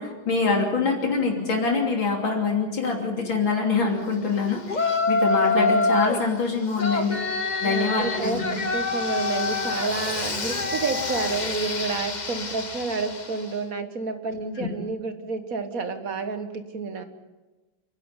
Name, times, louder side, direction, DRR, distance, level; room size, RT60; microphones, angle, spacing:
voice 1, 0.0-7.2 7.6-8.4 14.6-14.7, left 4 dB, 75° left, 1 dB, 3.8 m, -25 dB
Yell, 4.7-6.2 6.8-13.5, left 3 dB, 25° left, 1.1 m, -26 dB
voice 2, 7.6-17.0, right 4 dB, 45° right, 8 dB, 1.9 m, -30 dB
29.0 x 11.5 x 9.7 m, 1.2 s
omnidirectional pair, 2.1 m